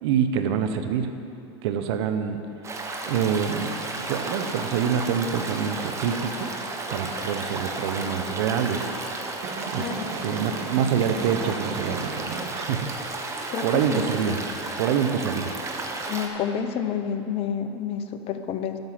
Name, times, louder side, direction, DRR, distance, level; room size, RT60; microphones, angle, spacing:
voice 1, 0.0-1.2 1.6-2.4 3.1-3.8 4.1-6.5 6.9-8.9 9.7-9.9 10.2-13.2 13.6-14.4 14.8-15.5, right 7 dB, 70° right, 8 dB, 0.9 m, -26 dB
Stream, 2.6-16.3, right 2 dB, 20° right, 1.2 m, -33 dB
sound 1, 9.4-12.6, right 5 dB, 45° right, 0.9 m, -35 dB
voice 2, 13.5-14.1 16.1-18.8, left 8 dB, 40° left, 8 dB, 0.9 m, -29 dB
12.0 x 5.7 x 7.4 m, 2.6 s
hypercardioid pair, 110°, 15 cm